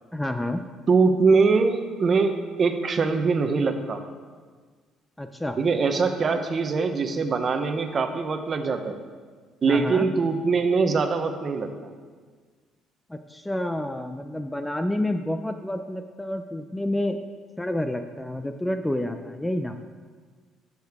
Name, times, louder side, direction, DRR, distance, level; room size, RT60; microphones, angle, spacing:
voice 1, 0.1-0.6 5.2-5.6 9.6-10.1 13.1-17.2 17.6-19.8, left 1 dB, 5° left, 7 dB, 0.4 m, -29 dB
voice 2, 0.9-2.3 2.6-4.0 5.6-8.9 9.6-11.9, right 4 dB, 35° right, 7 dB, 0.8 m, -22 dB
12.5 x 6.4 x 3.6 m, 1.5 s
cardioid pair, 115°, 0 cm